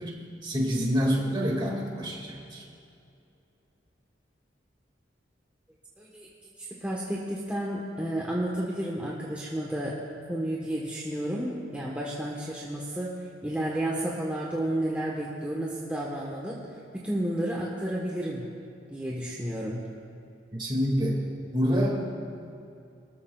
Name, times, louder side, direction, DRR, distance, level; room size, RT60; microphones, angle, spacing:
voice 1, 0.0-2.6 20.5-21.2 21.5-22.0, equal, 25° right, -1 dB, 2.1 m, -27 dB
voice 2, 6.0-6.3 6.6-10.0 10.3-16.6 16.9-18.5 18.8-19.8, right 1 dB, 10° right, -5 dB, 1.2 m, -31 dB
23.5 x 13.5 x 2.4 m, 2.6 s
head